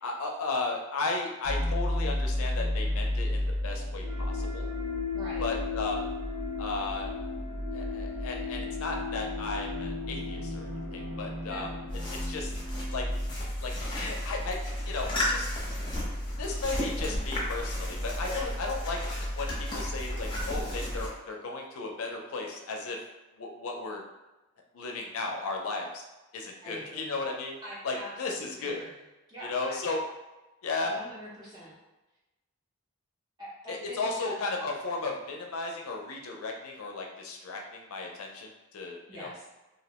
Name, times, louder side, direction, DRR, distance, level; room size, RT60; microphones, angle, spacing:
voice 1, 0.0-4.7 5.4-6.0 6.6-7.1 7.7-11.7 12.2-12.5 12.9-13.1 13.6-14.6 14.9-15.5 16.4-19.0 19.3-23.0 23.4-24.0 24.7-26.0 26.3-27.5 27.8-28.8 29.5-30.0 30.6-30.9 33.7-39.3, left 3 dB, 70° left, 1 dB, 0.4 m, -35 dB
sound 1, 1.4-13.3, left 2 dB, 85° right, 0.6 m, -33 dB
voice 2, 5.1-5.4 11.5-11.7 26.6-27.2 27.6-29.0 29.3-29.8 30.8-31.8 33.4-34.4 39.1-39.5, equal, 20° right, -8 dB, 0.7 m, -44 dB
sound 2, 11.9-21.1, left 1 dB, 25° left, 0.7 m, -33 dB
2.5 x 2.0 x 2.8 m, 1.1 s
head